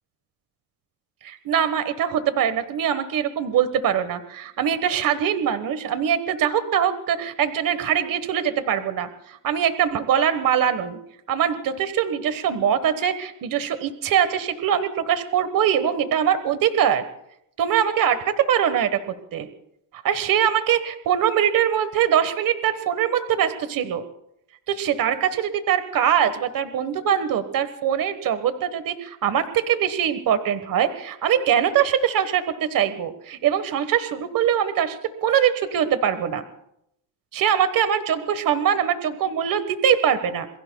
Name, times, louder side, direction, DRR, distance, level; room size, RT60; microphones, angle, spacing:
voice 1, 1.2-11.0 11.3-17.0 17.6-19.5 19.9-24.0 24.7-36.4 37.3-40.6, right 9 dB, 50° right, 11 dB, 1.4 m, -22 dB
27.5 x 22.0 x 2.3 m, 0.77 s
cardioid pair, 115°, 43 cm